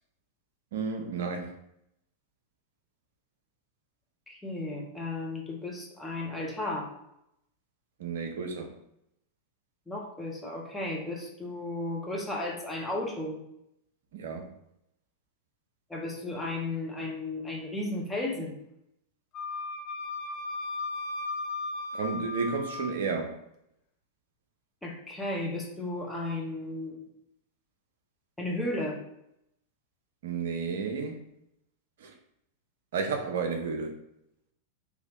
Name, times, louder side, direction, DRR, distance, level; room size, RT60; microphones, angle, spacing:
voice 1, 0.7-1.6 8.0-8.7 14.1-14.5 21.9-23.4 30.2-31.2 32.0-32.1 32.9-33.9, right 5 dB, 60° right, 5 dB, 0.5 m, -32 dB
voice 2, 4.3-6.9 9.9-13.4 15.9-18.5 24.8-27.0 28.4-29.0, left 2 dB, 5° left, -2 dB, 0.8 m, -34 dB
Wind instrument woodwind instrument, 19.3-23.0, left 3 dB, 35° left, 0.4 m, -36 dB
3.3 x 2.9 x 2.4 m, 0.80 s
figure-of-eight pair, 90°, 0 cm